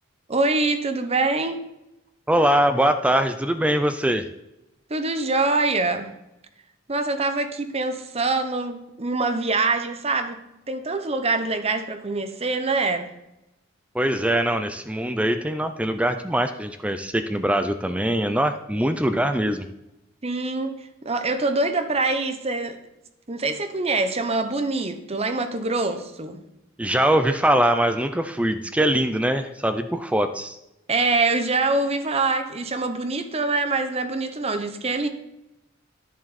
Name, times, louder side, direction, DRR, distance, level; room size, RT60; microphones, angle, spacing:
voice 1, 0.3-1.6 4.9-6.1 6.9-13.1 20.2-22.8 23.3-26.4 30.9-35.1, right 3 dB, 30° right, 0.8 m, -24 dB
voice 2, 2.3-4.2 13.9-19.7 26.8-30.6, right 1 dB, 5° right, 0.4 m, -22 dB
10.5 x 7.2 x 4.1 m
head